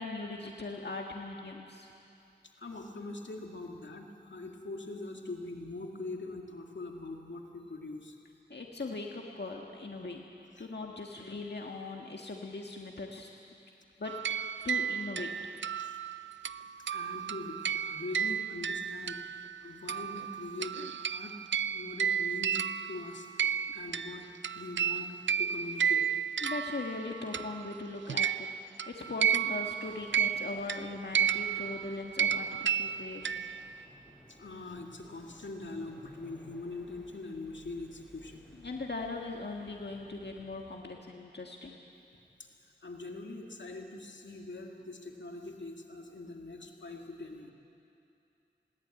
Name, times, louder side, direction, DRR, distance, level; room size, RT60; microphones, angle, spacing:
voice 1, 0.0-1.9 8.5-10.2 10.6-13.3 14.0-14.1 14.6-15.3 26.4-33.5 38.6-41.8, left 3 dB, 65° left, 0 dB, 1.7 m, -40 dB
voice 2, 2.6-8.2 10.6-10.7 15.8-16.0 16.9-19.2 19.6-21.4 21.7-24.3 24.5-26.1 34.3-38.5 42.4-42.5 42.8-47.5, left 2 dB, 85° left, 2 dB, 2.1 m, -43 dB
sound 1, 14.1-19.6 19.9-27.7 28.1-33.8, right 8 dB, 90° right, 0.4 m, -32 dB
sound 2, 29.8-40.9, equal, ahead, 5.2 m, -58 dB
21.0 x 18.0 x 9.0 m, 2.7 s
wide cardioid pair, 45°, 19 cm